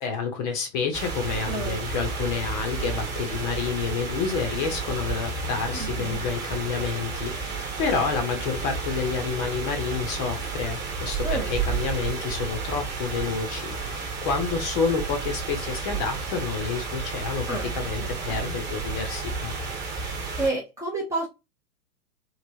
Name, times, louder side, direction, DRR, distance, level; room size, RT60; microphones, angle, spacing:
voice 1, 0.0-19.6, left 5 dB, 25° left, 0.7 m, -29 dB
sound 1, 0.9-20.5, right 4 dB, 20° right, 1.2 m, -32 dB
voice 2, 1.5-1.8 5.7-6.2 11.2-11.5 17.5-18.6 20.0-21.3, right 2 dB, 5° right, 0.7 m, -31 dB
3.2 x 2.9 x 2.7 m
hypercardioid pair, 120°, 48 cm